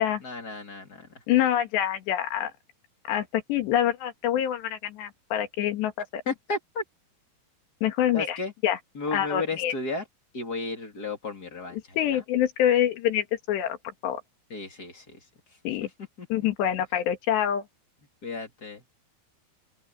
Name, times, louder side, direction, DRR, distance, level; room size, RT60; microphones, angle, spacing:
voice 1, 0.2-1.2 6.2-6.8 8.1-8.5 8.9-10.1 10.3-12.2 14.5-15.9 16.2-16.5 18.2-18.8, left 3 dB, 25° left, 2.9 m, -34 dB
voice 2, 1.3-2.5 3.1-6.2 7.8-8.4 8.6-8.8 9.1-9.7 11.7-13.8 14.0-14.2 15.7-15.9 16.3-17.6, left 11 dB, 70° left, 4.0 m, -26 dB
open air
omnidirectional pair, 5.5 m